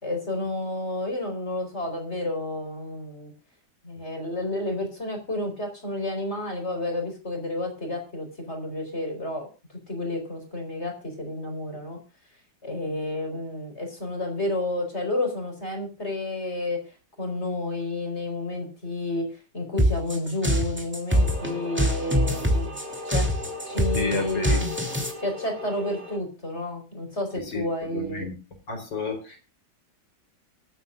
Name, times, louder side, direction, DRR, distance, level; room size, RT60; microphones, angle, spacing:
voice 1, 0.0-3.3 3.8-9.5 9.9-12.0 12.6-22.8 23.0-23.3 23.7-24.7 25.2-28.3, left 1 dB, 35° left, 3 dB, 4.7 m, -30 dB
sound 1, 19.8-25.1, equal, 5° right, 2.7 m, -24 dB
sound 2, 21.1-26.2, left 2 dB, 85° right, 5.1 m, -37 dB
voice 2, 23.9-24.6 27.4-27.6 27.9-28.4 28.7-29.4, left 3 dB, 80° left, 4 dB, 4.8 m, -31 dB
25.5 x 9.3 x 2.4 m, 0.30 s
omnidirectional pair, 1.9 m